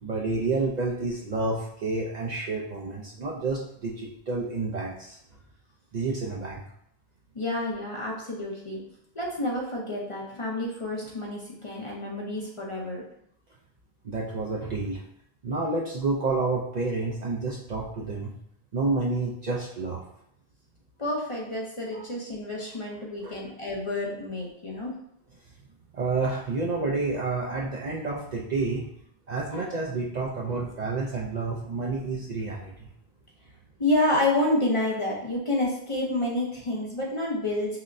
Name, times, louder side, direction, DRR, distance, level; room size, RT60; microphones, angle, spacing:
voice 1, 0.0-5.2 5.9-6.6 14.0-15.0 15.4-18.3 18.7-20.0 21.9-22.0 23.2-23.4 25.9-28.8 29.3-32.9, right 3 dB, 55° right, -3 dB, 0.5 m, -29 dB
voice 2, 7.3-8.8 9.1-13.0 21.0-24.9 33.8-37.8, left 1 dB, 35° left, -3 dB, 0.6 m, -29 dB
5.7 x 2.1 x 2.5 m, 0.73 s
omnidirectional pair, 1.0 m